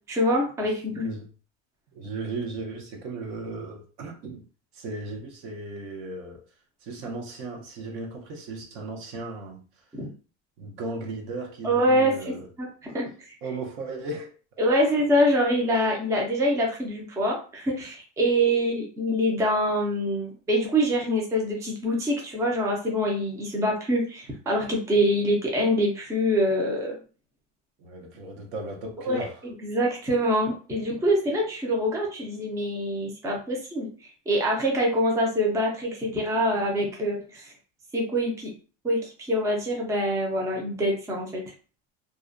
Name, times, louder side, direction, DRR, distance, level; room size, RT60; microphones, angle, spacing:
voice 1, 0.1-1.1 9.9-10.1 11.6-13.4 14.6-27.0 29.0-37.5 37.9-38.5 38.8-41.4, equal, 10° right, 0.4 m, -25 dB
voice 2, 0.9-1.3 1.9-4.4 4.7-6.4 6.8-9.6 10.6-12.5 13.4-14.3 27.8-29.4, right 3 dB, 60° right, 0.7 m, -36 dB
2.4 x 2.1 x 2.5 m
supercardioid pair, 140°, 32 cm